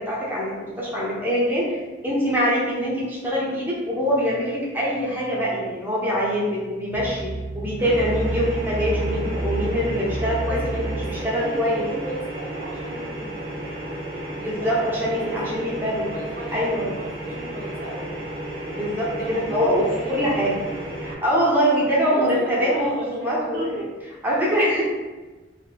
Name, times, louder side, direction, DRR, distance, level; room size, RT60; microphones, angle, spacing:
voice 1, 0.0-7.3 7.5-11.8 14.3-16.1 16.5-17.0 18.7-20.5 21.0-23.8 24.2-24.8, equal, 10° right, -7 dB, 0.7 m, -24 dB
voice 2, 2.7-3.0 10.2-13.7 14.4-15.5 16.1-16.7 17.0-18.2 19.1-20.3 21.9-23.1 23.5-23.9, right 1 dB, 50° right, -4 dB, 0.7 m, -36 dB
sound 1, 6.9-11.1, right 2 dB, 70° left, 0.7 m, -29 dB
sound 2, 7.8-21.1, right 1 dB, 75° right, 0.9 m, -33 dB
3.0 x 2.6 x 3.3 m, 1.2 s
head